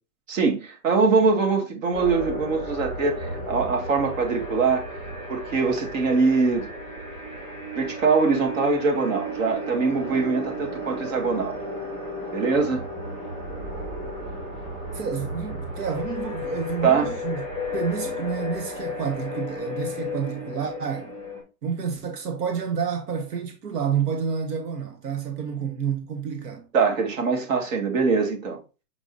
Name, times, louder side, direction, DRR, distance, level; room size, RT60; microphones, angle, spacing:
voice 1, 0.3-4.8 5.3-6.7 7.8-11.6 12.3-12.8 16.8-17.1 26.7-28.6, right 4 dB, 55° right, 2.1 m, -23 dB
sound 1, 1.9-21.4, left 1 dB, 25° right, 3.1 m, -34 dB
voice 2, 14.9-21.1 21.6-26.7, right 6 dB, 80° right, 1.5 m, -29 dB
7.1 x 5.0 x 2.7 m
hypercardioid pair, 165°, 46 cm